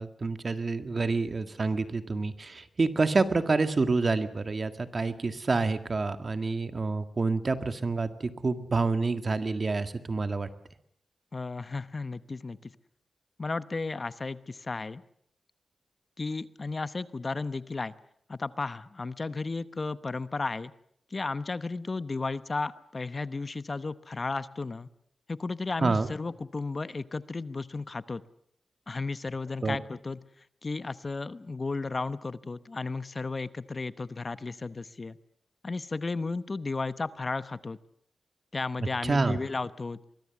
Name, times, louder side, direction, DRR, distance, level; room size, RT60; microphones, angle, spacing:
voice 1, 0.0-10.5 25.8-26.1 29.6-29.8 39.0-39.4, right 3 dB, 45° right, 9 dB, 1.9 m, -28 dB
voice 2, 11.3-12.7 13.4-15.0 16.2-17.9 18.3-20.7 21.1-24.9 25.3-28.2 28.9-30.2 30.6-35.2 35.6-37.8 38.5-40.0, left 3 dB, 40° left, 14 dB, 0.9 m, -34 dB
23.5 x 22.0 x 7.1 m, 0.70 s
wide cardioid pair, 90°, 0 cm